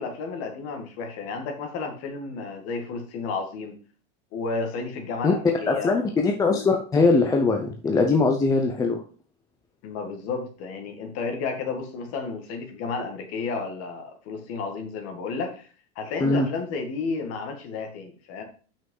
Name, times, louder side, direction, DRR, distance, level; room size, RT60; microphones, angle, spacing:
voice 1, 0.0-3.8 4.3-6.0 9.8-15.7 16.0-18.4, left 4 dB, 40° left, 4 dB, 2.0 m, -32 dB
voice 2, 5.7-9.0 16.2-16.5, left 3 dB, 10° left, 3 dB, 0.5 m, -21 dB
5.7 x 5.7 x 5.5 m, 0.40 s
supercardioid pair, 155°, 36 cm